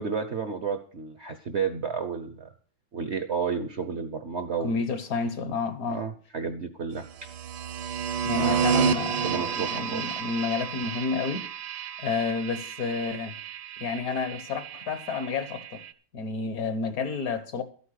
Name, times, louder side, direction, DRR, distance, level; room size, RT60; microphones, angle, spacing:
voice 1, 0.0-2.5 2.9-4.7 5.9-7.3 8.4-10.1, right 5 dB, 50° right, 0.9 m, -32 dB
voice 2, 4.6-6.1 8.2-11.5 12.0-13.3 13.8-15.8 16.1-17.6, left 4 dB, 55° left, 1.4 m, -30 dB
sound 1, 7.1-15.9, right 7 dB, 70° right, 1.3 m, -31 dB
12.5 x 8.7 x 6.4 m
omnidirectional pair, 2.0 m